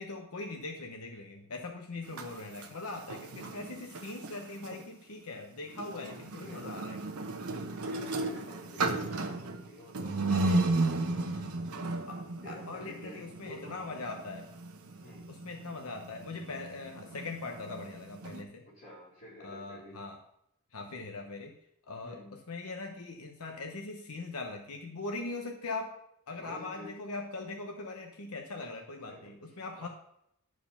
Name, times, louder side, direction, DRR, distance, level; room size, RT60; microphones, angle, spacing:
voice 1, 0.0-7.0 10.3-10.6 12.1-12.2 12.4-14.5 15.3-18.6 19.4-20.2 20.7-21.5 21.9-25.9 26.3-29.9, left 3 dB, 85° left, 3 dB, 1.0 m, -41 dB
sound 1, 2.0-4.8 5.7-18.4, right 2 dB, 85° right, 1.0 m, -35 dB
voice 2, 6.0-6.7 7.8-11.6 12.4-14.0 15.0-15.3 18.6-20.0 22.0-22.4 26.4-27.0 29.1-29.9, equal, 35° left, -6 dB, 3.8 m, -50 dB
11.0 x 4.8 x 5.6 m, 0.76 s
head